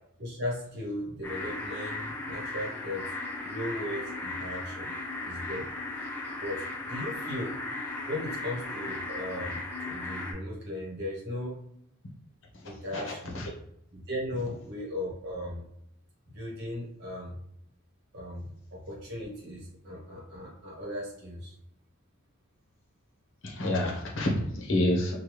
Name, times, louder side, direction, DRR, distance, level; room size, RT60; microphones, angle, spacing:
voice 1, 0.2-3.1 3.4-4.9 5.2-5.7 6.4-7.6 8.0-11.6 12.6-13.4 13.9-15.6 16.3-17.4 18.1-21.5, left 1 dB, 50° right, -3 dB, 1.0 m, -37 dB
sound 1, 1.2-10.3, left 2 dB, 10° left, 0.5 m, -36 dB
voice 2, 12.9-13.5 23.4-25.1, left 1 dB, 60° left, 0 dB, 0.8 m, -28 dB
3.3 x 2.2 x 3.0 m, 0.72 s
head